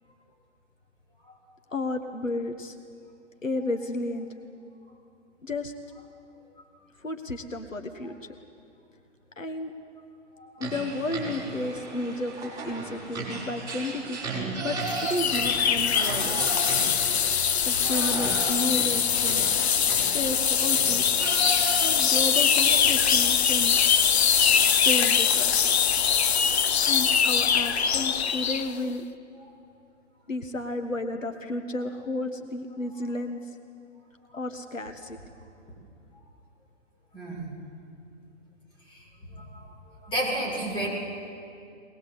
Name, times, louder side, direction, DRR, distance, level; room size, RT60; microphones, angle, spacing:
voice 1, 1.7-2.8 3.4-4.3 5.4-5.7 7.0-8.2 9.4-9.7 10.6-16.5 17.6-19.5 20.1-21.2 21.8-23.8 24.8-25.6 26.8-29.0 30.3-33.4 34.3-35.2, left 2 dB, 80° left, 6 dB, 1.6 m, -32 dB
voice 2, 10.3-10.6 26.1-26.2 37.1-37.4 38.9-39.7 40.0-40.9, right 1 dB, 15° left, -4 dB, 6.7 m, -32 dB
sound 1, 10.6-22.3, right 3 dB, 10° right, 5.5 m, -35 dB
sound 2, 14.9-28.7, left 7 dB, 55° left, 0.9 m, -23 dB
22.5 x 20.0 x 8.0 m, 2.5 s
figure-of-eight pair, 120°, 38 cm